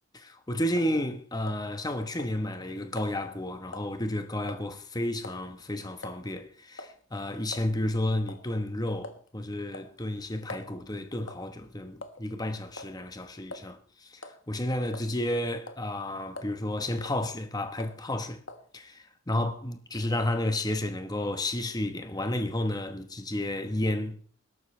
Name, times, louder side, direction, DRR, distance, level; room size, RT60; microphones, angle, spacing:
voice 1, 0.1-18.4 18.7-24.2, left 1 dB, 20° left, 1.1 m, -32 dB
sound 1, 0.8-1.0 1.5-1.9 2.2-2.4 3.0-3.1 3.7-3.9 4.5-4.7 5.2-5.5 6.0-6.2 6.8-7.0 7.5-7.7 8.3-8.5 9.0-9.3 9.7-10.7 11.3-11.5 12.0-12.3 12.8-13.0 13.5-13.7 14.2-14.4 14.9-15.3 15.7-15.9 16.4-16.6 17.0-17.2 17.8-18.0 18.5-18.7, left 2 dB, 60° left, 1.4 m, -43 dB
20.5 x 12.0 x 3.3 m
head